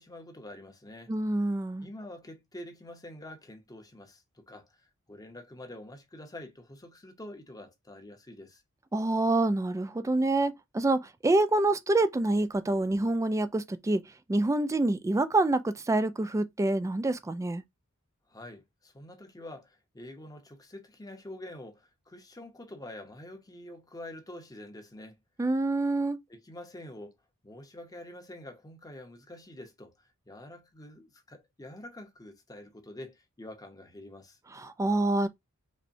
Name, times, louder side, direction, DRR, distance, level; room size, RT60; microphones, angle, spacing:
voice 1, 0.0-1.1 1.8-8.6 18.3-25.2 26.3-27.1 27.4-34.4, left 1 dB, 15° left, 0.7 m, -46 dB
voice 2, 1.1-1.9 8.9-14.0 14.3-17.6 25.4-26.2 34.5-35.3, right 2 dB, 15° right, 0.3 m, -26 dB
5.3 x 2.1 x 2.6 m
head